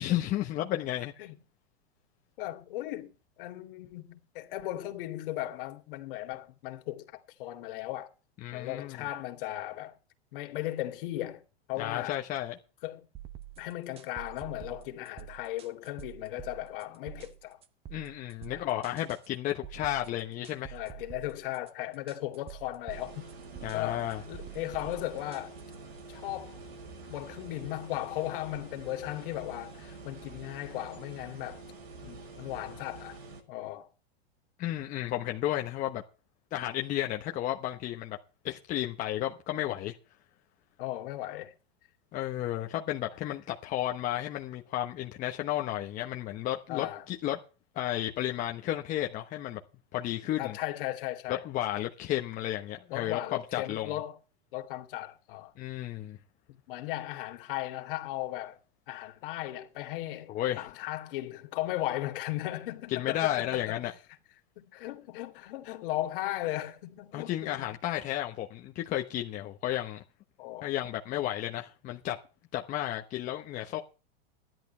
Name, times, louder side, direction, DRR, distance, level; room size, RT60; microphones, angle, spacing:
voice 1, 0.0-1.1 8.4-9.0 11.8-12.5 17.9-20.8 23.6-24.2 34.6-36.0 36.5-38.2 38.4-40.0 42.1-47.4 47.7-49.6 49.9-50.6 51.3-53.9 55.6-56.2 60.3-60.7 62.9-63.9 67.1-70.0 70.6-72.2 72.5-73.8, left 13 dB, 25° left, 1.0 m, -33 dB
voice 2, 2.4-8.1 8.5-9.9 10.3-11.4 11.7-12.2 12.8-13.1 13.6-17.6 18.5-18.7 20.7-23.3 23.7-25.6 26.1-26.6 27.1-31.6 32.0-33.2 33.5-33.9 40.8-41.5 46.7-47.1 50.4-51.4 52.9-54.2 54.5-55.5 56.5-58.6 58.9-63.8 64.6-67.6 70.4-70.7, left 15 dB, 60° left, 2.4 m, -37 dB
sound 1, 13.1-26.0, right 11 dB, 20° right, 0.8 m, -48 dB
sound 2, 22.9-33.4, right 3 dB, 80° right, 5.6 m, -47 dB
13.5 x 11.0 x 4.4 m
supercardioid pair, 155°, 31 cm